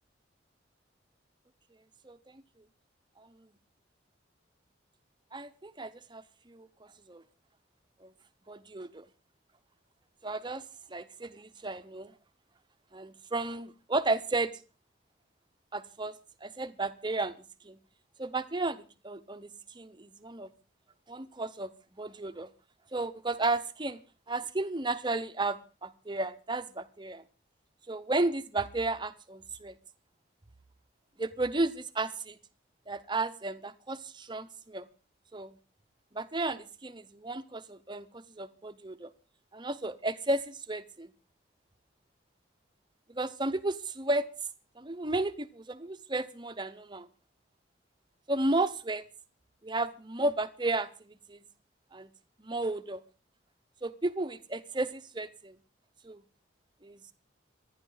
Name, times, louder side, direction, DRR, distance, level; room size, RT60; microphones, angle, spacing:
voice 1, 2.0-2.4 3.2-3.3 5.3-6.7 7.1-7.2 8.0-8.1 8.5-9.0 10.2-10.6 10.9-12.1 12.9-14.5 15.7-16.1 16.4-17.3 17.6-17.8 18.2-20.5 21.1-21.7 22.0-22.5 22.9-24.0 24.3-27.2 27.9-29.7 31.2-32.4 32.9-34.9 35.3-35.5 36.1-39.1 39.5-41.1 43.1-44.2 44.8-47.1 48.3-49.0 49.6-51.5 51.9-52.1 52.4-53.0 53.8-55.5 56.0-56.2 56.8-57.0, right 2 dB, 25° right, 11 dB, 0.9 m, -33 dB
26.5 x 10.5 x 4.0 m, 0.34 s
head